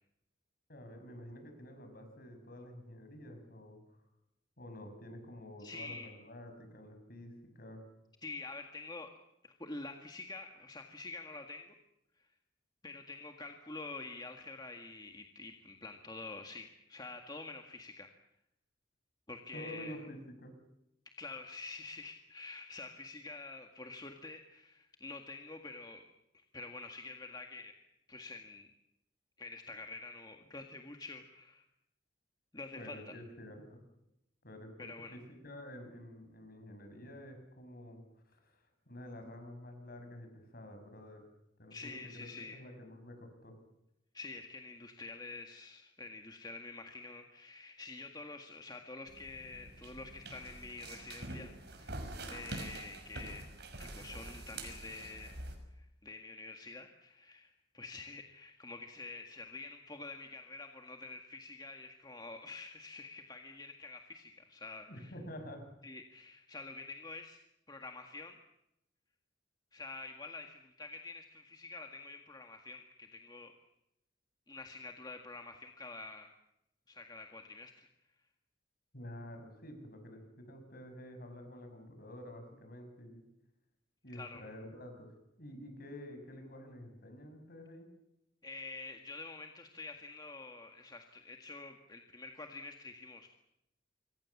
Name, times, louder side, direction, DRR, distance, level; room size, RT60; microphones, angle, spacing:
voice 1, 0.7-4.0 4.6-7.8 19.5-20.5 32.7-33.8 34.4-41.2 41.6-43.5 64.9-65.7 78.9-83.2 84.0-85.1 85.4-87.9, left 1 dB, 50° left, 6 dB, 7.1 m, -49 dB
voice 2, 5.6-6.1 8.2-9.1 9.4-11.7 12.8-18.1 19.3-20.0 21.2-26.0 26.5-27.7 28.1-28.7 29.4-31.6 32.5-33.1 34.8-35.2 41.7-42.6 44.1-53.4 53.8-55.4 55.7-65.1 65.8-67.4 67.7-68.4 69.7-73.5 74.5-76.3 76.9-77.9 84.1-84.4 88.4-93.3, left 3 dB, 20° left, 4 dB, 1.8 m, -47 dB
sound 1, 49.1-55.6, right 2 dB, 60° right, 5.8 m, -46 dB
26.5 x 23.5 x 7.3 m, 0.84 s
head